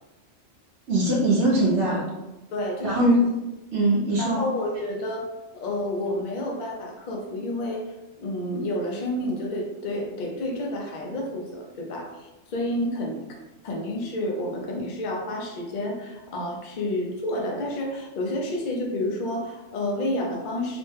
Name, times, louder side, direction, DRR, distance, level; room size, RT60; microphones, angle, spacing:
voice 1, 0.9-2.0 2.8-3.1 3.7-4.4, right 2 dB, 70° right, -5 dB, 0.9 m, -21 dB
voice 2, 2.5-3.2 4.2-5.3 5.5-7.8 8.2-13.2 13.6-20.8, left 1 dB, 50° left, 0 dB, 0.6 m, -30 dB
3.0 x 2.1 x 3.2 m, 1.0 s
omnidirectional pair, 1.2 m